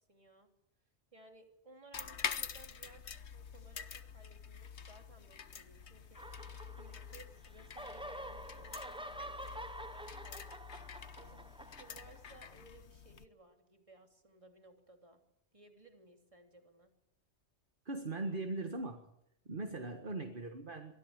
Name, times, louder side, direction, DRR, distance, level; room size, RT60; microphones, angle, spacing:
voice 1, 0.1-0.5 1.1-6.2 6.7-10.7 11.1-15.2 15.5-16.9, right 2 dB, 30° right, 4 dB, 3.2 m, -60 dB
sound 1, 1.9-13.3, left 7 dB, 70° left, 1.4 m, -46 dB
sound 2, 6.2-7.3 7.6-12.5, right 1 dB, 5° right, 0.9 m, -48 dB
voice 2, 17.9-19.0 19.5-20.9, right 2 dB, 45° right, 5 dB, 1.9 m, -40 dB
24.0 x 15.5 x 9.0 m, 0.79 s
omnidirectional pair, 1.2 m